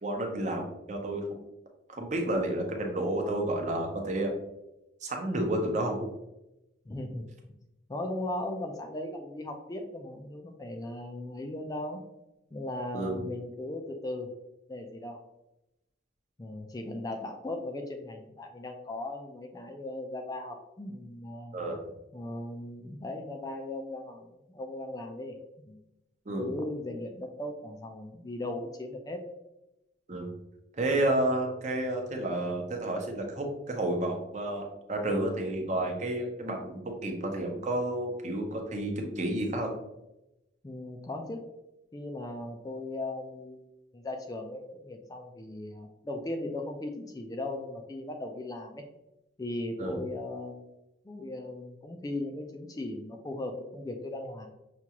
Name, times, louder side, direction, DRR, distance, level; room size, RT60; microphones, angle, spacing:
voice 1, 0.0-1.4 1.9-4.3 5.0-6.1 12.9-13.2 21.5-21.8 26.3-26.5 30.1-30.3 30.8-39.7 49.8-50.0, right 1 dB, 40° right, 2 dB, 0.7 m, -31 dB
voice 2, 6.9-7.3 7.9-12.0 12.5-14.3 14.7-15.2 16.4-21.6 22.1-25.4 25.7-25.8 26.4-29.2 40.6-41.5 41.9-43.7 43.9-48.8 49.4-50.7 51.0-54.5, left 1 dB, 20° left, 3 dB, 0.3 m, -38 dB
5.9 x 2.4 x 2.8 m, 0.92 s
head